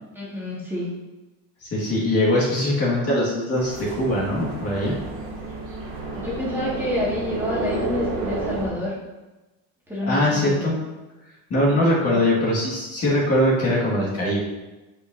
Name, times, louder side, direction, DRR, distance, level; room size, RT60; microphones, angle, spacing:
voice 1, 0.1-0.9 6.2-8.9 9.9-10.7 12.1-12.2, left 1 dB, 5° right, -8 dB, 1.8 m, -28 dB
voice 2, 1.6-4.9 10.1-10.7 11.5-14.4, left 1 dB, 35° left, -5 dB, 1.8 m, -21 dB
sound 1, 3.5-8.7, right 3 dB, 90° right, 2.1 m, -31 dB
8.2 x 5.2 x 2.6 m, 1.1 s
cardioid pair, 140°, 42 cm